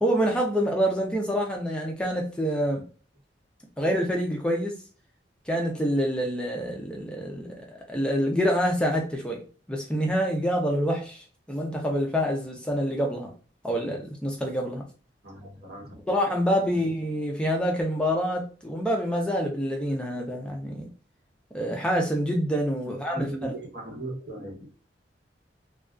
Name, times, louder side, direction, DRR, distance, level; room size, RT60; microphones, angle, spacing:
voice 1, 0.0-2.8 3.8-4.8 5.5-13.3 13.6-14.8 16.1-20.9 21.5-23.5, equal, 5° left, 0.4 m, -27 dB
voice 2, 15.2-16.0 16.7-16.9 22.8-24.7, right 1 dB, 60° right, 0.9 m, -38 dB
2.3 x 2.2 x 2.3 m
head